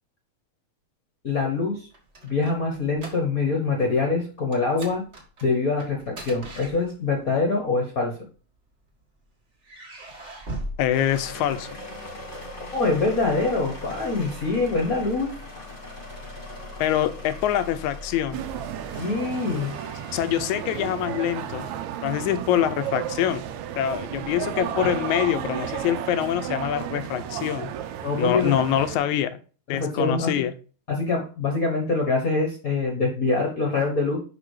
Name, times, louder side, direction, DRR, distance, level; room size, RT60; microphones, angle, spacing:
voice 1, 1.2-1.9 2.2-5.0 5.4-8.2 12.7-15.3 18.9-19.7 24.8-24.9 28.0-28.5 29.7-30.3 30.9-34.2, left 3 dB, 45° left, 1.2 m, -24 dB
sound 1, 1.7-3.6 3.9-4.1 4.5-7.3 8.2-9.0 9.6-11.9, right 1 dB, 30° right, 1.4 m, -40 dB
voice 2, 10.8-11.7 16.8-18.4 20.1-21.7 22.0-23.4 23.8-27.7 28.2-29.4 29.7-30.5, left 11 dB, 85° left, 2.0 m, -25 dB
sound 2, 10.9-21.8, left 1 dB, 25° left, 1.3 m, -40 dB
sound 3, 18.3-29.0, right 10 dB, 85° right, 2.0 m, -33 dB
6.1 x 5.4 x 4.7 m
omnidirectional pair, 3.3 m